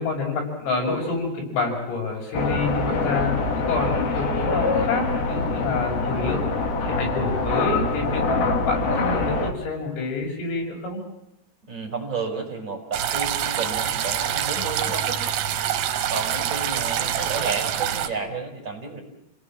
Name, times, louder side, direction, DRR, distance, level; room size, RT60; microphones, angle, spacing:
voice 1, 0.0-6.4 6.9-11.0, left 3 dB, 85° left, 0 dB, 8.7 m, -28 dB
sound 1, 2.3-9.5, left 3 dB, 55° left, 3.5 m, -24 dB
voice 2, 11.7-15.2 16.1-19.0, right 4 dB, 15° right, 0 dB, 5.8 m, -31 dB
sound 2, 12.9-18.1, right 10 dB, 70° right, 3.5 m, -26 dB
28.5 x 18.5 x 7.6 m, 0.87 s
omnidirectional pair, 5.8 m